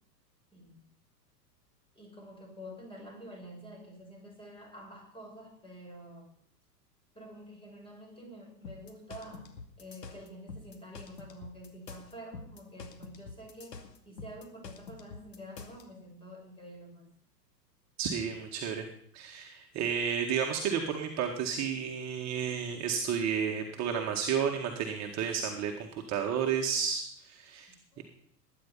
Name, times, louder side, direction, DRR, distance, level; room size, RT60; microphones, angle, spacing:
voice 1, 0.5-0.8 1.9-6.3 7.1-17.1 27.7-28.0, equal, 10° left, 2 dB, 6.5 m, -48 dB
sound 1, 8.6-15.8, left 4 dB, 75° left, 2.4 m, -46 dB
voice 2, 18.0-18.9 19.1-27.7 28.0-28.1, right 7 dB, 35° right, 1 dB, 2.0 m, -32 dB
20.5 x 10.0 x 5.7 m, 0.66 s
figure-of-eight pair, 95°, 49 cm